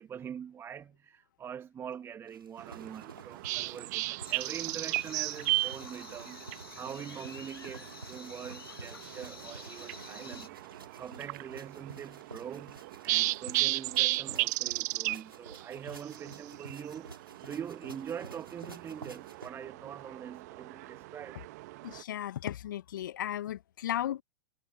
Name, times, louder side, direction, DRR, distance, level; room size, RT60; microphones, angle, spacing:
voice 1, 0.0-6.5 6.7-10.6 11.0-21.4, right 8 dB, 20° right, 1.8 m, -43 dB
sound 1, 2.3-19.5, right 3 dB, 80° right, 6.5 m, -51 dB
sound 2, 2.6-22.0, right 21 dB, 45° right, 1.4 m, -36 dB
sound 3, 4.2-10.5, left 4 dB, 80° left, 3.2 m, -49 dB
voice 2, 21.8-24.2, left 12 dB, 60° left, 1.6 m, -35 dB
figure-of-eight pair, 100°, 12 cm